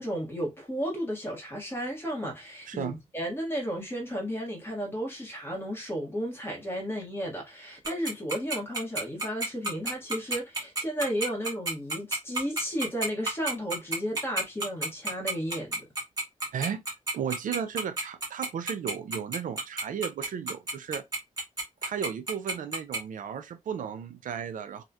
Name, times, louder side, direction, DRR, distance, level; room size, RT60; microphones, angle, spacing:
voice 1, 0.0-15.8, equal, 15° left, 1.2 m, -33 dB
Tick-tock, 7.8-23.0, right 2 dB, 30° right, 1.2 m, -30 dB
voice 2, 16.5-16.8 17.1-21.0 21.8-24.8, right 8 dB, 90° right, 0.4 m, -34 dB
2.8 x 2.3 x 2.3 m
wide cardioid pair, 145°, 13 cm